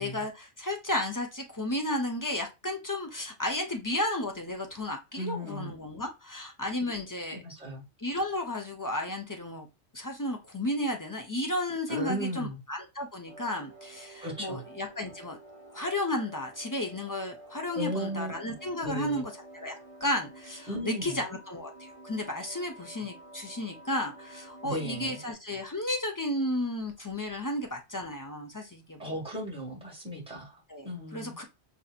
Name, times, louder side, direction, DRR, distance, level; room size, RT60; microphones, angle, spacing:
voice 1, 0.0-7.4 8.0-9.7 9.9-15.4 15.7-29.2 30.7-30.9 31.1-31.4, left 1 dB, 25° left, 0.4 m, -33 dB
voice 2, 5.2-5.7 6.9-7.0 7.3-7.8 11.9-12.6 14.2-14.6 17.8-18.3 18.8-19.3 20.7-21.2 24.6-25.2 29.0-31.4, equal, 5° right, 1.6 m, -36 dB
sound 1, 13.2-25.3, right 2 dB, 30° right, 1.4 m, -50 dB
5.5 x 2.7 x 2.4 m
omnidirectional pair, 1.2 m